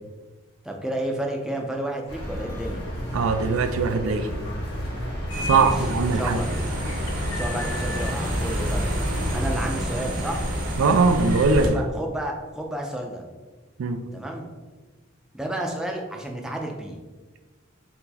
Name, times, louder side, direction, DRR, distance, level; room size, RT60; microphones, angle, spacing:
voice 1, 0.6-2.9 5.4-5.7 6.1-6.4 7.3-8.9 9.3-10.4 11.6-13.2 14.1-14.5 15.3-17.0, right 1 dB, 5° right, 0 dB, 0.4 m, -31 dB
sound 1, 2.1-9.4, equal, 50° left, 1.0 m, -31 dB
voice 2, 3.1-4.3 5.5-6.4 10.8-11.8 13.8-14.0, right 4 dB, 80° right, 9 dB, 0.4 m, -21 dB
sound 2, 5.3-5.8 6.2-8.1, left 4 dB, 80° left, 0.5 m, -36 dB
sound 3, 5.3-11.7, equal, 40° right, 0.7 m, -29 dB
4.4 x 2.0 x 4.1 m, 1.3 s
head